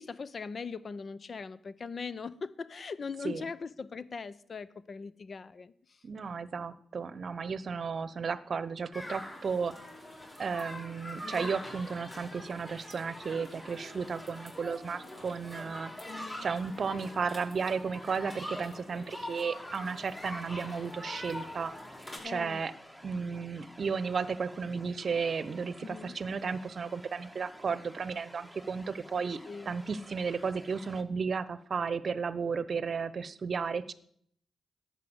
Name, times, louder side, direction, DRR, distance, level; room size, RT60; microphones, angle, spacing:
voice 1, 0.0-6.0 11.2-11.5 16.1-16.5 22.2-22.6 25.8-26.2 29.5-29.7, left 5 dB, 50° left, 17 dB, 0.7 m, -41 dB
voice 2, 6.0-9.7 10.4-15.9 16.4-21.7 22.2-22.7 23.0-29.4 29.7-33.9, right 5 dB, 55° right, 16 dB, 0.8 m, -34 dB
sound 1, 8.9-22.2, left 1 dB, 25° left, 5.7 m, -44 dB
sound 2, 19.5-31.0, equal, 5° left, 1.7 m, -53 dB
12.0 x 8.4 x 7.8 m, 0.65 s
hypercardioid pair, 40°, 0 cm